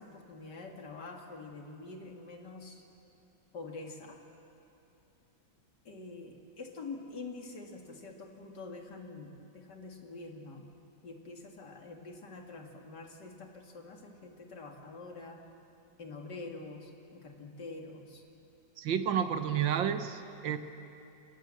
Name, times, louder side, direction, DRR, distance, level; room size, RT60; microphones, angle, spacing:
voice 1, 0.0-2.8 3.5-4.2 5.8-10.7 11.0-15.4 16.0-18.2, left 3 dB, 60° left, 2 dB, 2.7 m, -46 dB
voice 2, 18.8-20.6, right 8 dB, 75° right, 9 dB, 1.7 m, -30 dB
29.5 x 17.5 x 7.7 m, 2.9 s
omnidirectional pair, 2.1 m